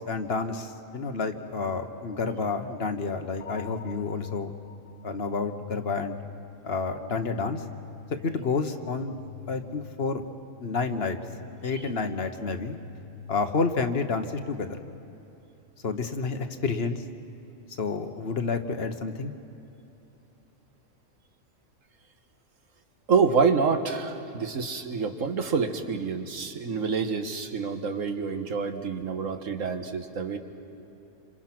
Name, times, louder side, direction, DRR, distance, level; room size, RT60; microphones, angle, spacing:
voice 1, 0.0-4.5 5.0-6.2 6.6-7.6 8.2-9.2 9.5-10.2 10.6-11.2 11.6-12.8 13.3-14.8 15.8-17.0 17.8-19.3, left 4 dB, 55° left, 7 dB, 1.4 m, -29 dB
sound 1, 3.4-15.4, left 7 dB, 80° left, 1.3 m, -45 dB
voice 2, 23.1-30.4, right 5 dB, 85° right, 7 dB, 1.8 m, -27 dB
28.0 x 26.0 x 6.0 m, 3.0 s
omnidirectional pair, 1.3 m